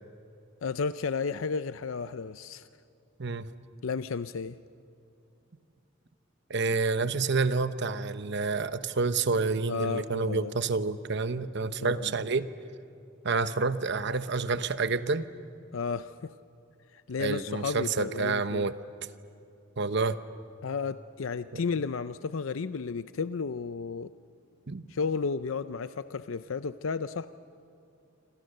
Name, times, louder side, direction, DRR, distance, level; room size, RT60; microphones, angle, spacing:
voice 1, 0.6-2.7 3.8-4.6 9.7-10.5 11.8-12.1 15.7-16.3 16.9-18.7 20.6-24.1 24.9-27.3, left 5 dB, 90° left, 13 dB, 0.5 m, -33 dB
voice 2, 3.2-3.5 6.5-12.5 13.2-15.2 17.2-18.8 19.8-20.2 21.5-21.6 24.7-24.8, right 4 dB, 60° right, 12 dB, 0.9 m, -28 dB
28.0 x 26.5 x 6.6 m, 2.7 s
head